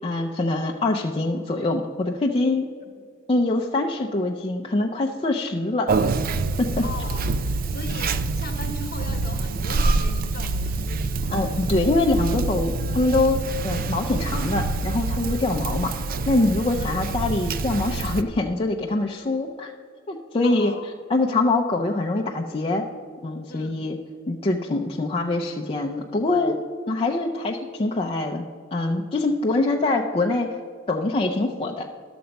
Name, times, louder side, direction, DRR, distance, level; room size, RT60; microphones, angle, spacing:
voice 1, 0.0-2.7 3.3-5.9 6.6-6.8 11.3-15.9 16.3-19.7 20.1-20.7 21.1-22.8 23.2-24.0 24.3-28.4 28.7-30.6 30.9-31.9, left 2 dB, 25° left, 0 dB, 0.5 m, -24 dB
Conversation, 5.9-18.2, right 3 dB, 45° right, 0.4 m, -26 dB
voice 2, 6.8-11.4 16.8-17.0 20.4-20.9 23.5-23.8, left 2 dB, 50° left, 6 dB, 1.1 m, -39 dB
11.5 x 6.9 x 5.2 m, 2.2 s
head